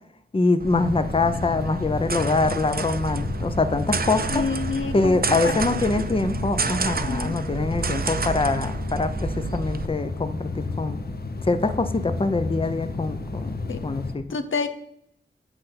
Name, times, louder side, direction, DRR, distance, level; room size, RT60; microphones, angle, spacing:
voice 1, 0.3-4.4 4.9-11.0 11.4-13.6 13.8-14.2, left 3 dB, 30° left, 10 dB, 0.7 m, -24 dB
sound 1, 0.6-9.9, right 5 dB, 50° right, 0.6 m, -30 dB
sound 2, 0.7-14.2, left 3 dB, 50° left, 0.9 m, -32 dB
voice 2, 4.3-6.0 7.0-7.4 13.7-13.8 14.3-14.7, left 4 dB, 90° left, 9 dB, 0.7 m, -29 dB
8.1 x 6.6 x 5.7 m, 0.74 s
wide cardioid pair, 80°, 20 cm